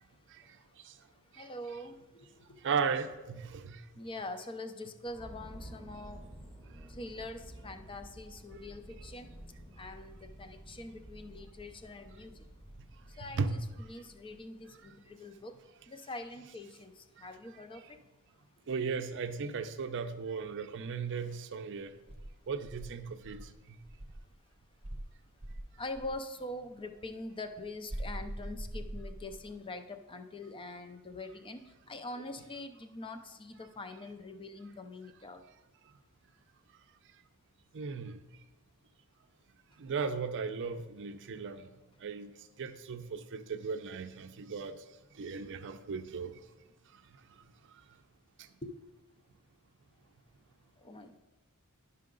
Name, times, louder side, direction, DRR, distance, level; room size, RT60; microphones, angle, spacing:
voice 1, 1.4-2.0 2.3-2.5 4.0-6.2 6.9-9.3 9.8-12.4 13.2-15.6 15.9-18.0 25.8-35.4 48.6-48.7 50.8-51.2, left 2 dB, 25° left, 8 dB, 0.5 m, -44 dB
voice 2, 2.6-3.8 13.2-13.6 18.7-21.9 22.5-23.8 37.7-38.2 39.8-41.7 42.0-42.3 42.6-44.8 45.2-46.3, right 5 dB, 55° right, 9 dB, 0.5 m, -36 dB
sound 1, 5.0-14.6, right 1 dB, ahead, 0.9 m, -51 dB
Insect, 22.1-24.3 24.8-26.2 27.9-29.6, right 1 dB, 30° right, 0.9 m, -42 dB
10.5 x 5.6 x 3.8 m, 1.1 s
head